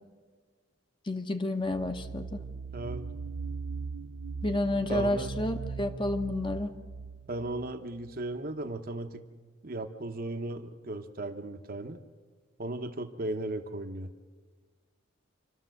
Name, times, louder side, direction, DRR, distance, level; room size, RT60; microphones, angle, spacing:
voice 1, 1.1-2.4 4.4-6.7, left 2 dB, 25° left, 6 dB, 1.0 m, -30 dB
sound 1, 1.6-8.3, right 4 dB, 80° right, 0.7 m, -39 dB
voice 2, 2.7-3.1 4.9-5.3 7.3-9.2 9.6-12.0 12.6-14.1, right 2 dB, 45° right, 7 dB, 1.0 m, -36 dB
27.0 x 12.5 x 7.7 m, 1.5 s
head